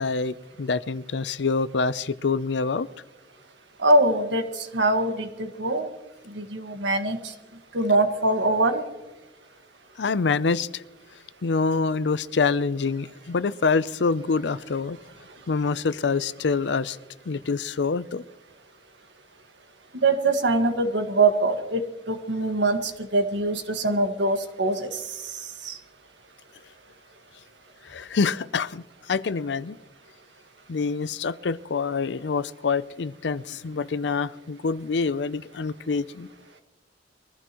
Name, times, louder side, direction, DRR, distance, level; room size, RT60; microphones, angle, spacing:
voice 1, 0.0-2.9 10.0-10.8 11.4-15.0 15.5-17.0 17.3-18.2 27.9-29.8 30.7-36.3, left 4 dB, 70° left, 16 dB, 0.5 m, -26 dB
voice 2, 3.8-5.9 6.3-7.2 7.7-8.8 19.9-21.8 22.1-25.0 25.6-25.8, right 2 dB, 85° right, 6 dB, 1.7 m, -23 dB
22.5 x 14.5 x 3.0 m, 1.1 s
head